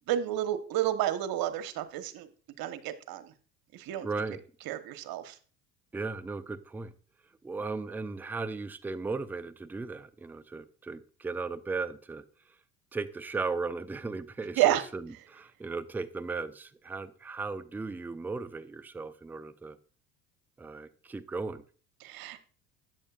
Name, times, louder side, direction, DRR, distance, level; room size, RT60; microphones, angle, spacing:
voice 1, 0.1-2.3 2.6-3.3 3.7-4.1 4.7-5.4 14.6-14.8 22.0-22.4, right 12 dB, 50° right, 1.2 m, -30 dB
voice 2, 4.0-4.4 5.9-6.9 7.4-12.2 12.9-19.8 20.6-21.6, right 4 dB, 5° right, 0.4 m, -36 dB
13.0 x 9.0 x 2.4 m
hypercardioid pair, 70°, 47 cm